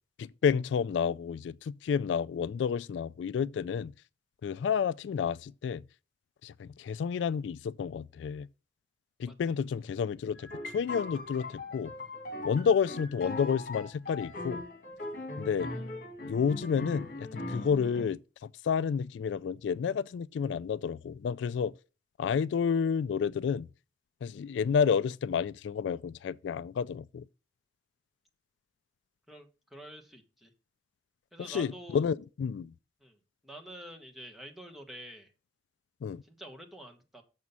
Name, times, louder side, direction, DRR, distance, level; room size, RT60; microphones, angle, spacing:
voice 1, 0.2-3.9 4.4-5.8 6.4-8.5 9.2-11.9 12.4-14.6 15.4-15.7 16.2-21.7 22.2-23.7 24.2-27.2 31.4-32.7 36.0-36.2, left 6 dB, 85° left, 0.3 m, -30 dB
sound 1, 10.3-18.0, left 2 dB, 50° left, 1.8 m, -40 dB
voice 2, 29.3-30.5 31.3-32.1 33.0-33.2 33.4-35.3 36.2-37.2, right 1 dB, ahead, 1.2 m, -47 dB
7.0 x 6.2 x 5.4 m
head